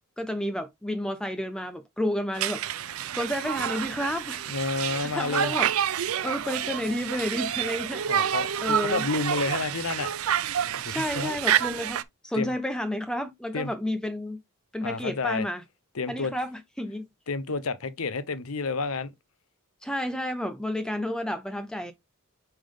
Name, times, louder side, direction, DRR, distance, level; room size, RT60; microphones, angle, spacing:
voice 1, 0.2-4.5 5.0-8.4 8.6-9.0 10.9-14.4 14.7-15.6 16.1-17.1 19.8-21.9, left 1 dB, 5° left, 0.4 m, -31 dB
Conversation, 2.4-12.0, right 9 dB, 70° right, 0.5 m, -28 dB
voice 2, 4.5-5.5 8.1-10.1 10.6-11.3 12.3-12.5 13.5-13.7 14.8-15.5 15.9-16.3 17.3-19.1, left 3 dB, 70° left, 0.8 m, -30 dB
8.8 x 3.6 x 3.5 m
head